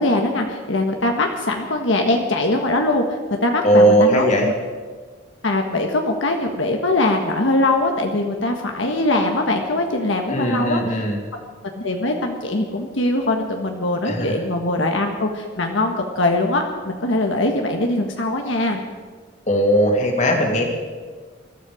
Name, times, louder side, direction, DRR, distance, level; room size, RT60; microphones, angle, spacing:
voice 1, 0.0-3.0 3.4-4.5 5.4-11.0 11.8-18.8, left 2 dB, 75° left, 3 dB, 1.4 m, -21 dB
voice 2, 3.6-4.5 10.3-11.2 14.1-14.4 19.5-20.6, right 1 dB, 35° left, 1 dB, 2.5 m, -18 dB
22.0 x 13.0 x 5.0 m, 1.5 s
head